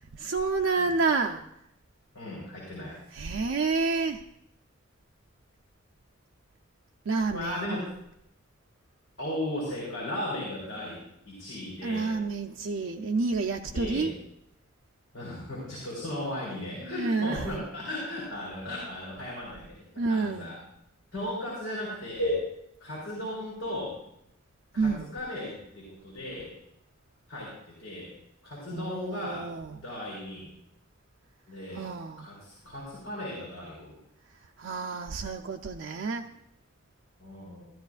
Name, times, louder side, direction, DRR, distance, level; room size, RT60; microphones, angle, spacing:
voice 1, 0.1-1.4 3.1-4.2 7.1-7.8 11.8-14.1 16.8-17.5 20.0-20.5 24.8-25.1 28.7-29.8 31.7-32.2 34.6-36.2, right 4 dB, 80° right, 3 dB, 0.5 m, -29 dB
voice 2, 2.1-2.9 7.3-7.8 9.2-12.1 13.6-14.1 15.1-20.6 21.1-22.4 22.8-23.9 24.7-26.5 27.3-28.2 28.4-29.4 29.8-30.6 31.5-31.9 32.2-34.0 37.2-37.7, left 1 dB, 70° left, -6 dB, 3.8 m, -36 dB
13.5 x 13.0 x 2.5 m, 0.78 s
head